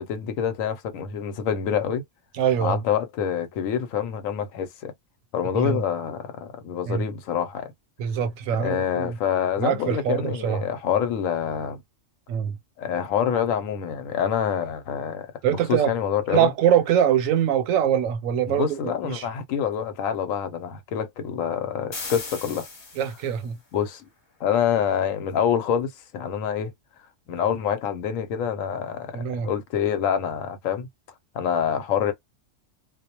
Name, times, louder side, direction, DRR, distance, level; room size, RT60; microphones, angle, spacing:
voice 1, 0.0-2.0 2.6-4.9 5.3-7.7 8.6-11.8 12.8-16.5 18.5-22.7 23.7-24.0 24.4-26.7 27.3-30.9 31.3-32.1, left 8 dB, 85° left, 1.0 m, -26 dB
voice 2, 2.4-2.8 5.6-5.8 6.9-7.0 8.0-9.1 9.6-10.6 12.3-12.6 15.4-15.9 16.3-19.3 23.0-23.6 29.1-29.5, right 9 dB, 85° right, 1.0 m, -23 dB
sound 1, 21.9-23.5, left 3 dB, 40° left, 0.9 m, -37 dB
2.3 x 2.1 x 2.8 m
omnidirectional pair, 1.3 m